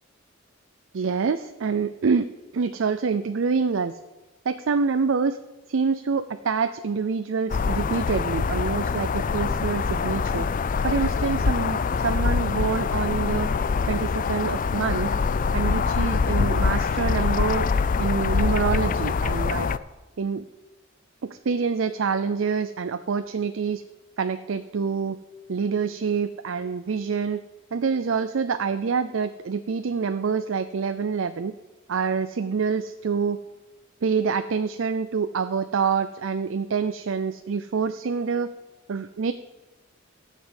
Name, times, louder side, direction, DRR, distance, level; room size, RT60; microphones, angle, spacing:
voice 1, 0.9-2.3 2.5-4.0 4.5-5.4 5.7-10.5 10.8-13.5 13.9-15.1 15.5-17.7 18.0-19.7 20.2-20.4 21.2-23.8 24.2-25.2 25.5-27.4 27.7-31.5 31.9-33.4 34.0-38.5 38.9-39.3, right 5 dB, 70° right, 10 dB, 0.5 m, -26 dB
sound 1, 7.5-19.8, left 5 dB, 40° left, 0.4 m, -24 dB
15.5 x 5.4 x 8.2 m, 1.1 s
head